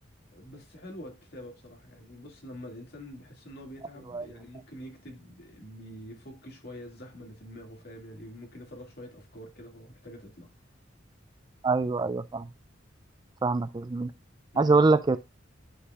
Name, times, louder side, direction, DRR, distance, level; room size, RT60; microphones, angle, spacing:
voice 1, 0.3-10.5 14.5-14.9, equal, 55° left, 2.1 m, -46 dB
voice 2, 11.6-12.5 13.4-14.1 14.6-15.2, right 3 dB, 20° right, 0.3 m, -24 dB
11.0 x 5.0 x 2.3 m
head